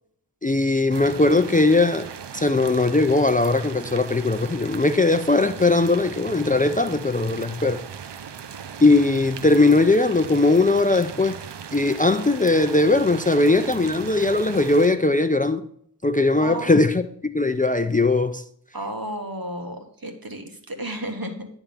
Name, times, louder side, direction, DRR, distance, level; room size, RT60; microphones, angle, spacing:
voice 1, 0.4-2.1 2.3-7.8 8.8-11.4 11.7-15.7 16.0-17.1 17.3-18.4, left 2 dB, 20° left, 0.4 m, -19 dB
sound 1, 0.9-14.9, right 7 dB, 80° right, 0.6 m, -38 dB
voice 2, 16.4-16.7 18.7-21.5, right 1 dB, 60° right, 1.3 m, -32 dB
10.0 x 3.5 x 6.9 m
wide cardioid pair, 40°, 41 cm